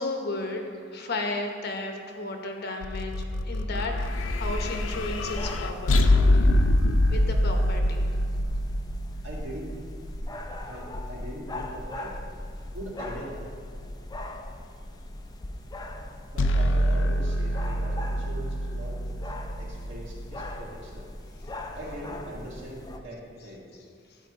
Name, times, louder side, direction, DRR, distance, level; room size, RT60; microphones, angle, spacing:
voice 1, 0.0-3.1 3.4-3.9 4.4-6.2 7.1-8.1, left 2 dB, 55° left, 3 dB, 0.9 m, -33 dB
sound 1, 2.8-10.1 16.4-20.5, left 1 dB, 75° left, 0.5 m, -25 dB
sound 2, 4.0-23.0, left 1 dB, 20° left, 0.5 m, -38 dB
voice 2, 9.2-9.8 10.6-12.1 12.7-13.4 16.3-19.0 19.6-21.1 21.8-23.7, right 1 dB, 65° right, -4 dB, 2.0 m, -41 dB
11.0 x 4.4 x 4.9 m, 2.2 s
head